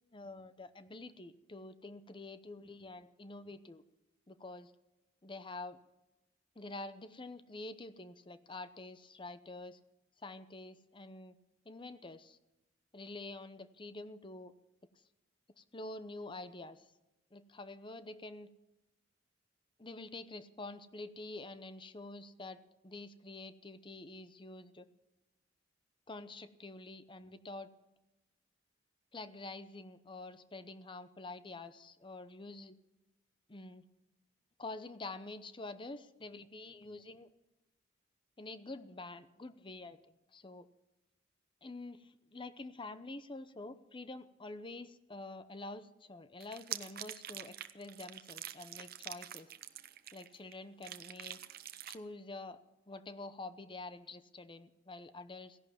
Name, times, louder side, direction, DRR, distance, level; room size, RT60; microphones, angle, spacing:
voice 1, 0.1-3.8 4.3-4.7 5.2-5.8 6.6-9.8 10.2-11.4 11.6-12.4 12.9-14.5 15.6-16.9 17.3-18.5 19.8-24.9 26.1-27.7 29.1-32.8 33.5-33.8 34.6-37.3 38.4-40.7 41.6-49.5 50.1-51.4 51.9-52.6 52.9-55.6, left 2 dB, 25° left, 13 dB, 0.8 m, -47 dB
sound 1, 46.4-50.5 50.8-52.0, right 11 dB, 50° right, 0.8 m, -45 dB
16.5 x 11.0 x 7.3 m, 0.97 s
head